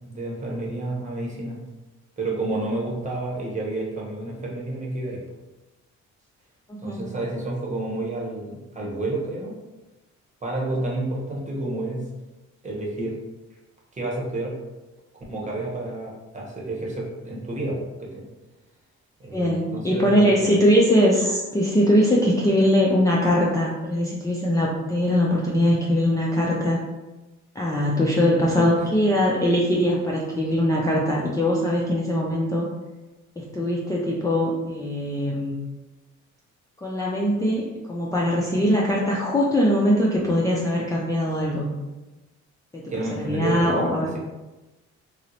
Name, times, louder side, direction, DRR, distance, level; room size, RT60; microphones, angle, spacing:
voice 1, 0.0-1.6 2.2-5.2 6.8-9.6 10.4-12.1 12.6-13.2 13.9-14.5 15.3-18.2 19.2-20.5 28.4-28.7 42.9-43.9, right 2 dB, 25° right, -3 dB, 1.0 m, -30 dB
voice 2, 6.7-7.1 19.3-26.8 27.5-32.7 33.4-35.6 36.8-41.7 42.7-44.1, equal, 10° left, -5 dB, 0.4 m, -21 dB
2.8 x 2.0 x 3.9 m, 1.1 s
cardioid pair, 90°, 30 cm